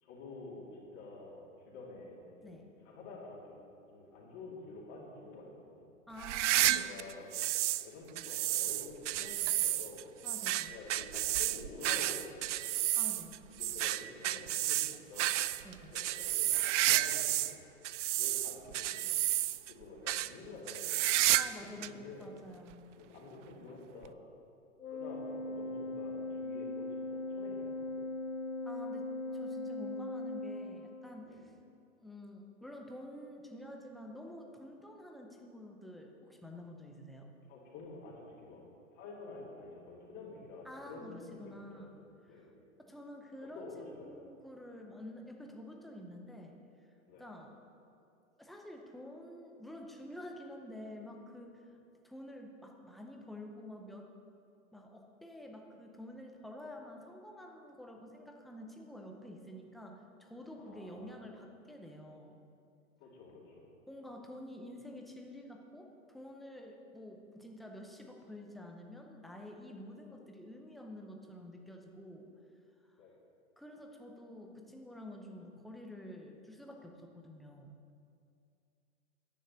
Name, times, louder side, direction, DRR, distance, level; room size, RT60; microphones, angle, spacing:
voice 1, 0.0-3.6 3.9-5.9 6.7-7.4 7.8-10.1 10.7-12.8 13.5-15.4 15.9-16.5 16.8-17.5 18.1-19.1 19.7-21.1 21.5-22.3 23.0-24.2 24.9-28.0 31.2-31.4 37.5-38.6 38.9-41.9 42.3-42.5 43.4-44.2 47.1-47.3 60.6-61.1 63.0-63.7 73.0-73.1, left 3 dB, 40° left, -4 dB, 2.6 m, -49 dB
voice 2, 6.1-6.9 10.2-10.7 13.0-13.4 15.6-15.9 21.4-22.9 28.6-31.5 32.0-37.3 40.6-42.0 42.3-42.5 42.8-46.6 47.2-47.6 48.4-51.6 52.0-54.1 54.7-62.4 63.9-72.3 73.6-77.7, left 1 dB, ahead, 1 dB, 0.5 m, -49 dB
sound 1, 6.2-7.9 8.2-17.5 17.8-19.7 20.1-20.3 20.7-21.6 21.8-21.9 22.7-22.8 24.0-24.1, right 14 dB, 60° right, 0.5 m, -31 dB
Organ, 24.8-31.3, left 2 dB, 90° left, 1.2 m, -39 dB
10.5 x 6.5 x 8.0 m, 2.5 s
hypercardioid pair, 130°, 41 cm